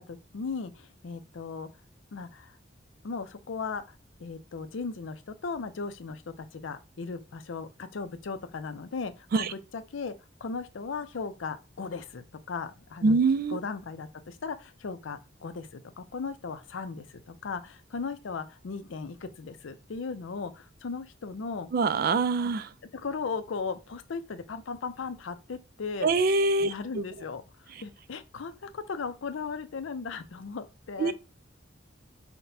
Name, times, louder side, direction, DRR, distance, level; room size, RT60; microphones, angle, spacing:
voice 1, 0.1-1.7 2.1-2.5 3.0-3.8 4.2-10.1 10.4-13.2 13.5-21.7 22.9-26.1 26.6-27.4 27.8-31.1, left 4 dB, 80° left, 0.5 m, -37 dB
voice 2, 13.0-13.6 21.7-22.7 26.0-26.7 31.0-31.1, right 3 dB, 50° right, 0.3 m, -24 dB
5.8 x 2.2 x 2.6 m
head